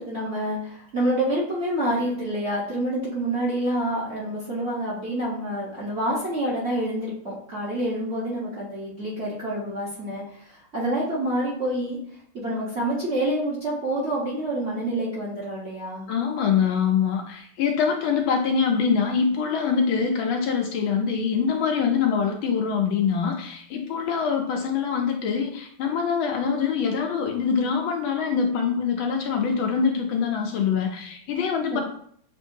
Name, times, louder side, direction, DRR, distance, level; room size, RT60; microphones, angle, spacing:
voice 1, 0.0-12.0 12.3-16.0 31.7-31.8, right 1 dB, 40° right, -6 dB, 1.1 m, -27 dB
voice 2, 16.1-31.8, left 6 dB, 75° left, 2 dB, 1.4 m, -24 dB
6.9 x 2.7 x 2.7 m, 0.62 s
omnidirectional pair, 2.4 m